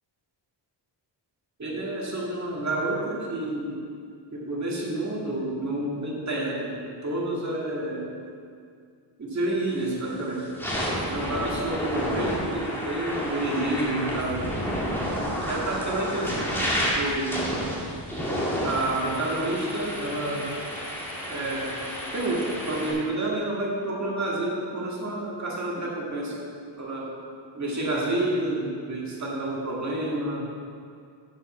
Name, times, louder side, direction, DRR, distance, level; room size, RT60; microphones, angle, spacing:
voice 1, 1.6-3.8 4.3-8.1 9.2-10.5 11.0-14.5 15.5-16.4 16.8-17.4 18.6-20.5 21.3-21.8 22.1-26.3 26.8-27.1 27.5-30.4, right 1 dB, 40° right, -4 dB, 2.0 m, -29 dB
sound 1, 9.7-10.0 10.4-22.9, equal, 5° left, 1.8 m, -30 dB
8.2 x 5.7 x 6.0 m, 2.3 s
wide cardioid pair, 120°, 45 cm